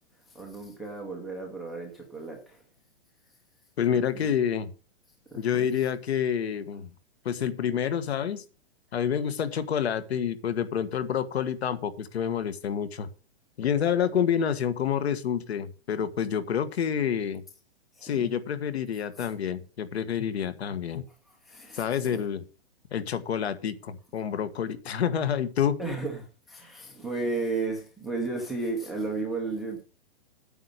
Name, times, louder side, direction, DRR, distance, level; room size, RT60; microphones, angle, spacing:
voice 1, 0.3-2.6 3.9-4.3 5.3-5.7 17.9-18.4 21.3-22.2 25.8-29.8, right 3 dB, ahead, 0.4 m, -34 dB
voice 2, 3.8-4.7 5.4-6.9 7.3-8.4 8.9-13.1 13.6-17.4 18.0-21.1 21.7-22.4 22.9-25.8, left 8 dB, 70° left, 1.7 m, -28 dB
9.1 x 7.7 x 6.7 m
hypercardioid pair, 170°, 33 cm